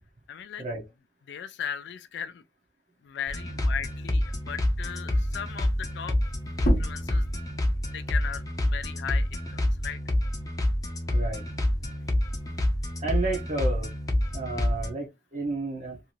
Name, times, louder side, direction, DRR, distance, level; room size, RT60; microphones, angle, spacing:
voice 1, 0.3-0.6 1.3-2.4 3.0-6.2 6.6-7.3 7.9-10.0, left 8 dB, 65° left, 0.3 m, -37 dB
sound 1, 3.3-14.9, left 1 dB, 20° left, 0.6 m, -28 dB
sound 2, 6.6-11.8 12.2-14.0, left 1 dB, 50° left, 0.8 m, -35 dB
voice 2, 11.1-11.4 13.0-13.9 14.3-16.0, right 3 dB, 40° right, 0.6 m, -31 dB
2.6 x 2.4 x 2.9 m
head